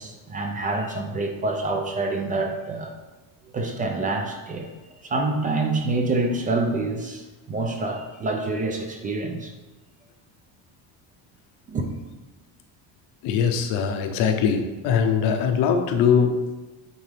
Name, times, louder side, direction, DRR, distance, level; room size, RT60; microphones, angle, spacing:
voice 1, 0.0-2.9 3.5-4.7 5.0-9.5 11.7-11.9, right 2 dB, 20° right, 4 dB, 0.4 m, -27 dB
voice 2, 13.2-16.6, left 7 dB, 85° left, 6 dB, 0.9 m, -22 dB
8.9 x 3.6 x 3.4 m, 1.2 s
cardioid pair, 170°, 40 cm